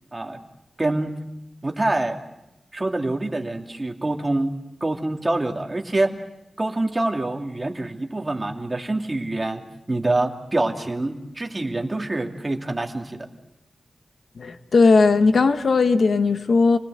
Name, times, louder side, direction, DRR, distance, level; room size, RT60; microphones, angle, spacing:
voice 1, 0.8-1.1 1.6-2.2 2.7-4.5 4.8-6.1 6.6-13.3, right 2 dB, 25° right, 3 dB, 2.7 m, -25 dB
voice 2, 14.4-16.8, left 4 dB, 75° left, 9 dB, 1.2 m, -17 dB
29.0 x 19.5 x 8.0 m, 0.94 s
wide cardioid pair, 105°, 0 cm